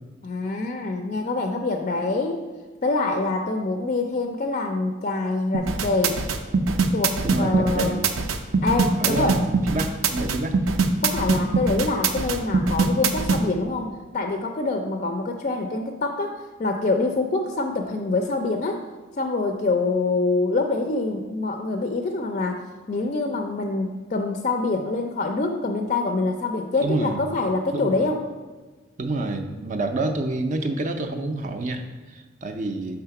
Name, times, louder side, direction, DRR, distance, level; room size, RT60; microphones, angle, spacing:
voice 1, 0.2-2.4 2.8-6.2 6.9-8.0 8.6-9.4 11.0-18.8 19.2-28.2, left 3 dB, 35° left, 5 dB, 0.4 m, -25 dB
sound 1, 5.5-13.4, right 4 dB, 90° right, 0.5 m, -22 dB
voice 2, 7.2-8.0 9.0-10.6 26.8-27.2 27.7-28.0 29.0-33.0, right 2 dB, 40° right, 6 dB, 0.4 m, -28 dB
5.6 x 3.5 x 5.7 m, 1.3 s
head